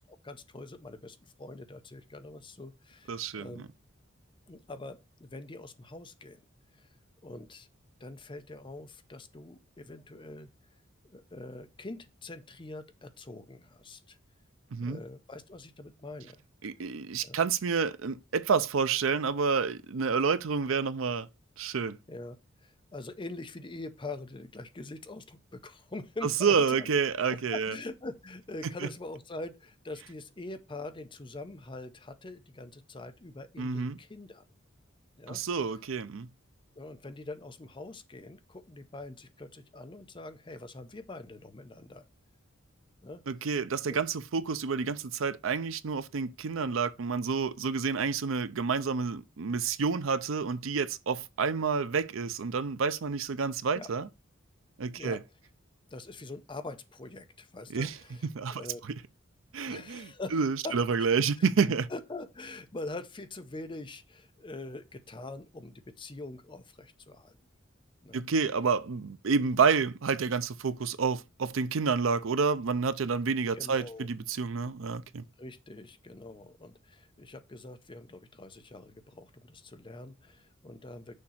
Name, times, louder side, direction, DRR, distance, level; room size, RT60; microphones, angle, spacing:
voice 1, 0.0-3.6 4.5-6.4 6.8-6.9 7.2-7.7 8.0-10.5 11.1-14.2 14.8-16.4 17.2-17.4 22.1-22.4 22.6-26.9 27.3-34.4 35.2-35.4 36.7-42.0 43.0-43.2 43.9-44.0 53.7-53.9 55.0-55.2 55.9-58.8 59.7-60.4 60.6-67.4 68.0-68.2 73.5-74.1 75.4-81.1, left 2 dB, 25° left, 0.7 m, -44 dB
voice 2, 3.1-3.6 14.7-15.0 16.6-21.3 21.6-22.0 26.2-27.7 33.6-34.0 35.3-36.3 43.3-54.1 54.8-55.2 57.7-57.9 58.3-58.7 59.5-61.9 68.1-75.2, right 5 dB, 75° right, 0.5 m, -29 dB
6.4 x 2.9 x 5.7 m
head